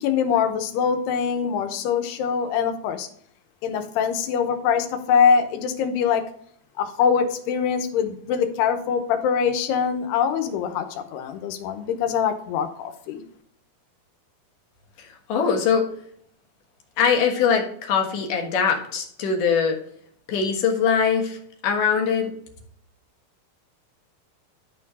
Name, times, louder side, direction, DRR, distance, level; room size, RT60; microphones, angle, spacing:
voice 1, 0.0-3.1 3.6-6.2 6.8-13.2, left 7 dB, 90° left, 8 dB, 3.0 m, -23 dB
voice 2, 15.0-15.9 17.0-19.8 20.3-22.3, left 6 dB, 65° left, 2 dB, 2.7 m, -22 dB
12.0 x 4.4 x 4.1 m, 0.65 s
omnidirectional pair, 4.5 m